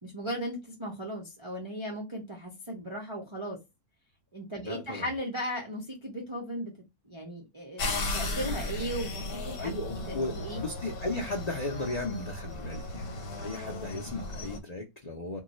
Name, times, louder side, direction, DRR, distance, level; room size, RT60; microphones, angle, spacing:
voice 1, 0.0-3.6 4.3-6.7 7.1-9.7 10.1-10.6, equal, 45° right, 0.3 m, -37 dB
voice 2, 4.6-5.1 9.6-15.4, left 2 dB, 55° left, 0.4 m, -36 dB
sound 1, 7.8-14.6, left 2 dB, 85° left, 1.2 m, -36 dB
2.3 x 2.2 x 3.9 m
omnidirectional pair, 1.6 m